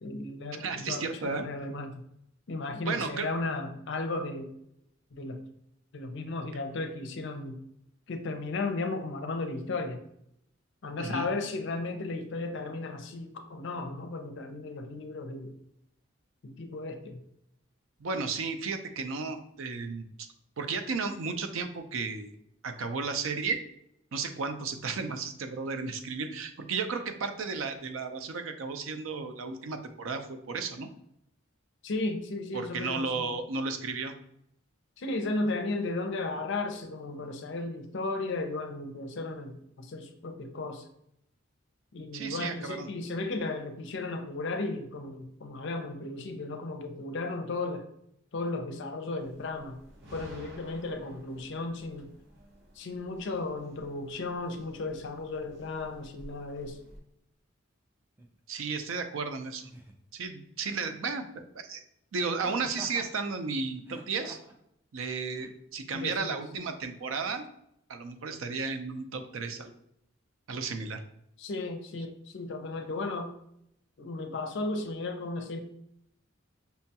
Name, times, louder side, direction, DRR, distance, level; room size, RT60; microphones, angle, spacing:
voice 1, 0.0-2.0 2.5-4.5 5.1-5.4 5.9-7.6 8.1-10.0 10.8-15.6 16.4-17.2 31.8-33.3 35.0-40.9 41.9-47.8 48.3-49.8 50.1-52.1 52.8-56.8 65.9-66.3 71.4-73.4 74.0-75.6, left 2 dB, 60° left, 6 dB, 0.5 m, -35 dB
voice 2, 0.6-1.5 2.8-3.3 11.0-11.3 18.0-20.1 20.6-22.4 22.6-23.6 24.1-30.9 32.5-34.1 42.1-42.9 58.5-59.7 60.1-61.8 62.1-64.4 64.9-67.5 67.9-69.7 70.5-71.0, right 4 dB, 85° right, 7 dB, 0.5 m, -34 dB
sound 1, 49.2-57.0, equal, 60° right, 0.9 m, -53 dB
Laughter, 58.2-58.3 59.7-60.1 62.4-63.1 63.8-64.6 65.4-65.5, right 1 dB, 10° right, 0.4 m, -48 dB
5.5 x 2.2 x 2.8 m, 0.76 s
head